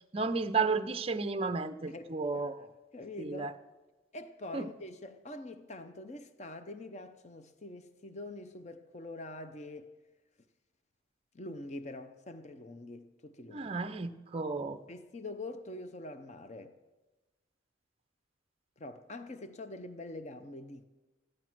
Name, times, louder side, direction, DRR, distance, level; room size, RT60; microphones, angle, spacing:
voice 1, 0.1-2.6 3.2-3.5 4.5-4.7 13.5-14.8, right 4 dB, 30° right, 0.5 m, -32 dB
voice 2, 1.9-2.5 2.9-3.6 4.1-9.9 11.3-13.7 14.9-16.8 18.8-20.8, left 2 dB, 35° left, 0.6 m, -45 dB
14.0 x 11.5 x 6.1 m
head